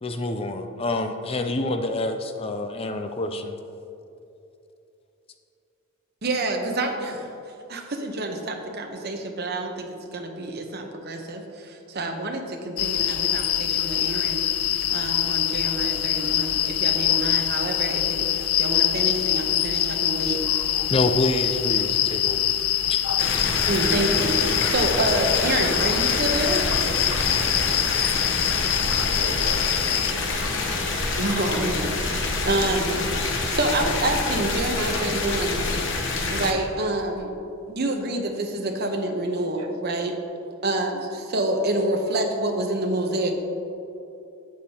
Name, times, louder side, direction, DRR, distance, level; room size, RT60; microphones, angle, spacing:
voice 1, 0.0-3.5 20.9-22.5 22.9-23.0, left 2 dB, 25° left, 6 dB, 0.4 m, -27 dB
voice 2, 6.2-7.3 7.7-14.4 14.9-20.4 23.7-26.7 31.2-32.0 32.4-33.0 33.5-35.7 36.3-37.3 37.7-40.1 40.6-43.4, right 1 dB, 45° right, 3 dB, 1.0 m, -27 dB
sound 1, 12.8-30.1, left 12 dB, 90° left, 0.4 m, -24 dB
sound 2, 23.2-36.5, left 3 dB, 55° left, 1.0 m, -26 dB
voice 3, 28.9-29.7 31.6-31.7 32.1-32.4 34.9-35.3 39.6-39.7, right 4 dB, 80° right, 7 dB, 0.6 m, -40 dB
12.0 x 8.2 x 2.9 m, 2.8 s
head